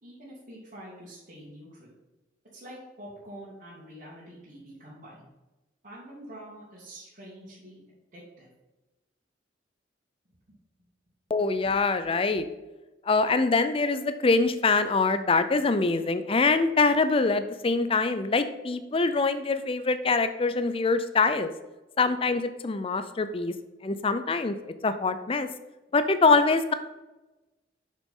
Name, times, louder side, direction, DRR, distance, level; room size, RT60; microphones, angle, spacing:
voice 1, 0.0-1.9 2.5-5.3 5.8-7.8 8.1-8.5, right 1 dB, 45° right, -10 dB, 2.2 m, -46 dB
voice 2, 11.3-12.5 13.1-21.5 22.0-23.5 23.8-24.6 24.8-25.5 25.9-26.7, left 3 dB, 30° left, 11 dB, 0.5 m, -24 dB
6.6 x 6.1 x 3.7 m, 1.1 s
head